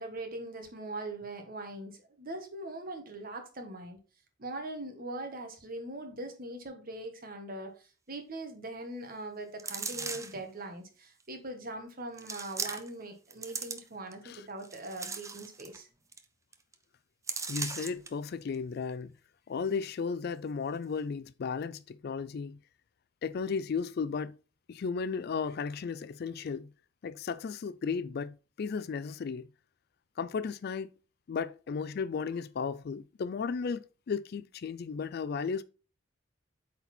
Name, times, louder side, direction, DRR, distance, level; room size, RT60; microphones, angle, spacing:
voice 1, 0.0-4.0 4.4-15.9, right 2 dB, 45° right, 1.4 m, -41 dB
sound 1, 9.6-10.4 11.2-11.3 12.2-13.0 13.3-14.1 14.6-15.8 16.1-16.2 16.5-16.7 17.3-18.1 18.5-18.6, right 4 dB, 15° right, 0.6 m, -38 dB
voice 2, 17.5-19.1 19.5-22.6 23.2-24.4 24.7-26.7 27.0-29.5 30.2-30.9 31.3-35.6, left 5 dB, 50° left, 0.4 m, -34 dB
8.3 x 4.2 x 4.3 m
head